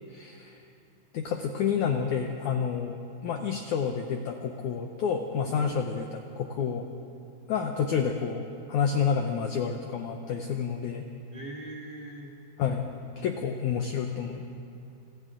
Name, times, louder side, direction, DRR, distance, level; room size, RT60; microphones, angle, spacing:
voice 1, 0.1-0.6 1.1-6.9 7.5-11.1 12.6-12.9 13.2-14.4, left 6 dB, 80° left, 4 dB, 1.8 m, -29 dB
voice 2, 11.3-12.3, right 1 dB, 60° right, -2 dB, 0.5 m, -41 dB
30.0 x 26.5 x 3.8 m, 2.7 s
omnidirectional pair, 4.7 m